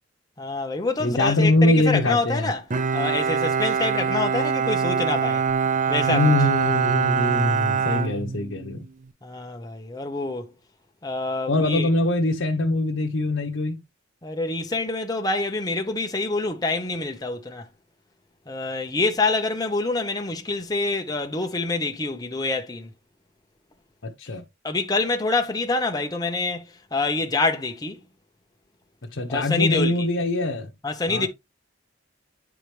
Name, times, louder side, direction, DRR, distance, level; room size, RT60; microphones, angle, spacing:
voice 1, 0.4-2.6 2.9-5.4 5.9-6.3 9.2-10.5 11.0-11.9 14.2-17.7 18.5-22.9 24.6-26.6 26.9-28.0 29.3-30.1 30.8-31.3, left 3 dB, 20° left, 0.9 m, -26 dB
voice 2, 1.0-2.5 6.1-8.8 11.5-13.8 24.0-24.4 29.1-30.7 31.1-31.3, left 2 dB, 70° left, 1.0 m, -23 dB
Bowed string instrument, 2.7-8.9, right 6 dB, 40° right, 0.6 m, -24 dB
9.1 x 4.9 x 3.3 m
head